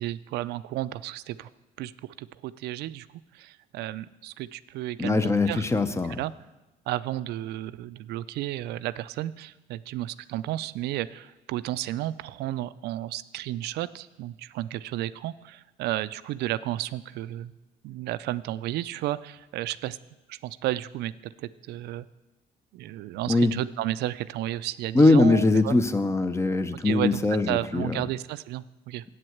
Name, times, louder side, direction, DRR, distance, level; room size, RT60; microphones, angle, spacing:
voice 1, 0.0-1.5 1.8-3.1 3.3-5.6 6.2-6.3 6.9-17.5 17.8-20.0 20.3-22.1 22.7-25.7 26.8-27.2 27.5-29.0, right 14 dB, 75° right, 15 dB, 0.4 m, -32 dB
voice 2, 5.0-6.2 23.3-23.5 24.9-28.0, left 2 dB, 15° left, 12 dB, 0.6 m, -22 dB
8.1 x 7.6 x 7.8 m, 1.0 s
cardioid pair, 110°, 17 cm